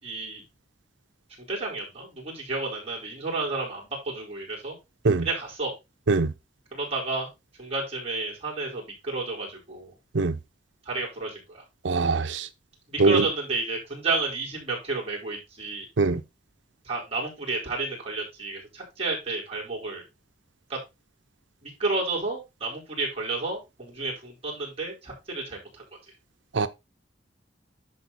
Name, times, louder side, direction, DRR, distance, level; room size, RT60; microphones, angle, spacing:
voice 1, 0.0-0.4 1.4-4.7 5.2-5.7 6.7-7.3 7.6-9.9 10.8-11.6 12.9-15.8 16.8-20.0 20.7-20.8 21.6-25.8, right 3 dB, 35° right, 4.7 m, -31 dB
voice 2, 11.8-12.5 13.0-13.2 16.0-16.2 26.5-26.7, right 3 dB, 75° right, 0.7 m, -22 dB
11.0 x 4.2 x 4.1 m
head